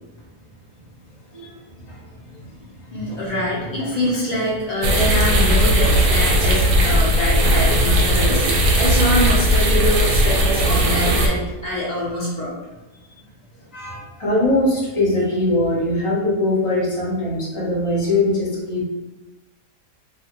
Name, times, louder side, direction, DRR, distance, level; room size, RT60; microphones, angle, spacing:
voice 1, 1.3-2.7 11.1-11.2 14.2-18.8, left 2 dB, 35° left, -7 dB, 0.5 m, -22 dB
voice 2, 2.9-12.5 13.7-14.1, left 1 dB, 85° left, -8 dB, 0.3 m, -24 dB
sound 1, 4.8-11.3, equal, 70° right, 1.0 m, -17 dB
2.7 x 2.4 x 2.9 m, 1.1 s
omnidirectional pair, 1.8 m